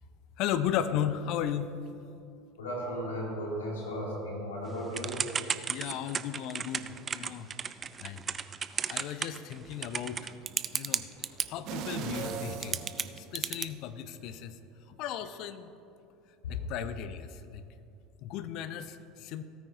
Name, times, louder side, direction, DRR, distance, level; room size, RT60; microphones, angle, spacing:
voice 1, 0.4-1.7 5.7-7.5 8.0-8.2 8.9-10.3 10.7-11.1 11.5-12.8 13.2-14.5 14.9-15.7 16.5-17.6 18.2-19.4, left 10 dB, 50° left, 12 dB, 0.5 m, -35 dB
voice 2, 2.6-5.3 11.2-11.3 16.4-16.5, equal, 75° left, -3 dB, 2.5 m, -35 dB
Typing / Telephone, 4.9-11.5 12.3-12.4 12.6-13.7, right 6 dB, 30° right, 0.4 m, -33 dB
sound 1, 11.7-13.8 14.2-14.4, right 7 dB, 50° right, 0.9 m, -38 dB
17.5 x 9.3 x 2.7 m, 2.6 s
figure-of-eight pair, 70°, 0 cm